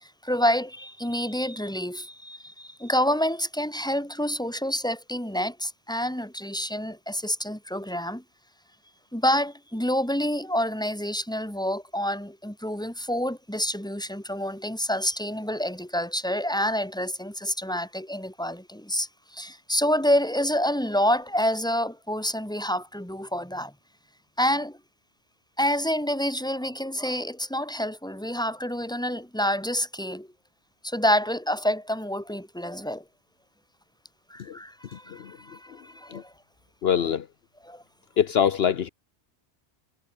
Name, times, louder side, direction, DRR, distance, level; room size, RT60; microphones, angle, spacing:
voice 1, 0.0-8.2 9.1-23.7 24.4-24.8 25.6-30.3 30.8-33.0 34.3-36.3 37.6-37.8, equal, 5° left, 3.2 m, -28 dB
voice 2, 36.8-37.2 38.2-38.9, left 8 dB, 65° left, 1.0 m, -23 dB
omnidirectional pair, 1.1 m